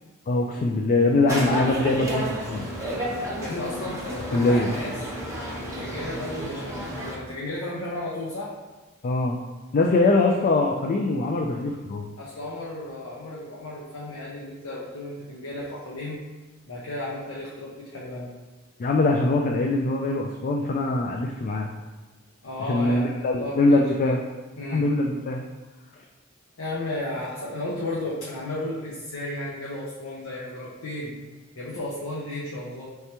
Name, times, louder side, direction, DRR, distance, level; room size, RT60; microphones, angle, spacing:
voice 1, 0.3-2.7 4.3-4.7 9.0-9.4 9.7-12.1 18.8-21.7 22.6-24.2 24.7-25.4, left 2 dB, 40° left, 1 dB, 0.3 m, -22 dB
sound 1, 1.3-7.1, right 1 dB, 15° right, 0.7 m, -31 dB
voice 2, 3.4-4.9 5.6-8.5 12.2-16.2 16.7-18.3 22.4-24.1 24.6-24.9 26.6-31.1 31.6-32.9, left 1 dB, 75° left, -5 dB, 0.7 m, -34 dB
4.6 x 3.3 x 2.9 m, 1.2 s
head